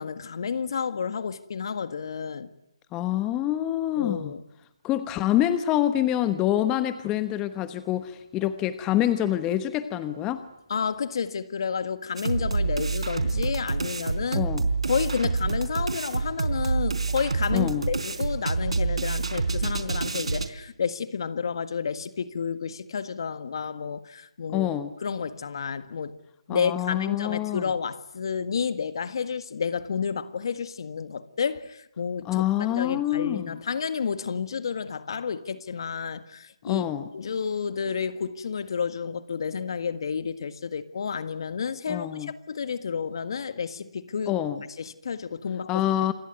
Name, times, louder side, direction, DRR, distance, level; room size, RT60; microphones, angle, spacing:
voice 1, 0.0-2.5 4.0-4.4 10.7-14.5 14.9-24.7 25.0-26.2 26.5-36.9 37.1-44.4 44.8-45.8, left 6 dB, 50° left, 1.7 m, -30 dB
voice 2, 2.9-4.3 4.8-10.5 14.3-14.7 17.5-17.8 24.5-24.9 26.5-27.7 32.2-33.6 36.6-37.1 41.9-42.3 44.3-44.6 45.7-46.1, left 12 dB, 15° left, 1.1 m, -26 dB
sound 1, 12.2-20.5, right 4 dB, 75° right, 4.1 m, -27 dB
27.5 x 22.0 x 9.4 m
figure-of-eight pair, 155°, 3 cm